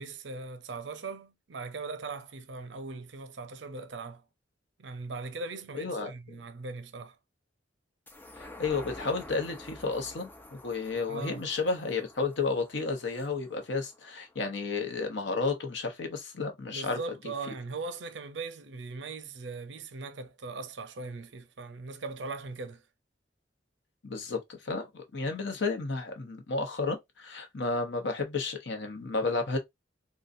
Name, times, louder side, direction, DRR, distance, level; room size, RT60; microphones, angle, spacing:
voice 1, 0.0-4.2 4.8-7.2 11.1-11.4 16.7-22.8, right 3 dB, 75° right, 0.6 m, -39 dB
voice 2, 5.7-6.4 8.4-17.0 24.0-29.6, left 4 dB, 75° left, 0.9 m, -32 dB
sound 1, 8.1-14.8 15.3-15.4, left 1 dB, 10° left, 0.5 m, -49 dB
3.8 x 2.3 x 2.5 m
head